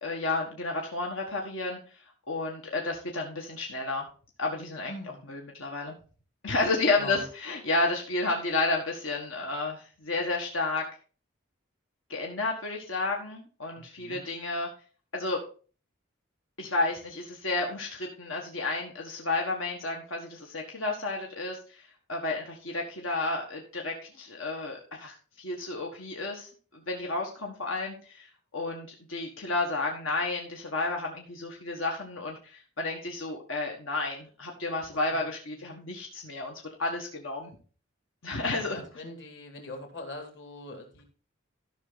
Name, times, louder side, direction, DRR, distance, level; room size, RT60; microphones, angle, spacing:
voice 1, 0.0-1.8 2.3-4.1 4.4-4.9 5.3-6.0 6.4-10.8 12.1-14.7 15.1-15.4 16.6-28.3 28.5-36.5 36.8-37.5 38.2-38.8, left 2 dB, 85° left, 0 dB, 1.7 m, -31 dB
voice 2, 4.9-5.2 7.0-7.2 13.8-14.2 35.0-35.3 35.5-35.9 38.5-41.0, left 2 dB, 60° left, 4 dB, 2.5 m, -42 dB
13.5 x 5.9 x 4.1 m, 0.38 s
head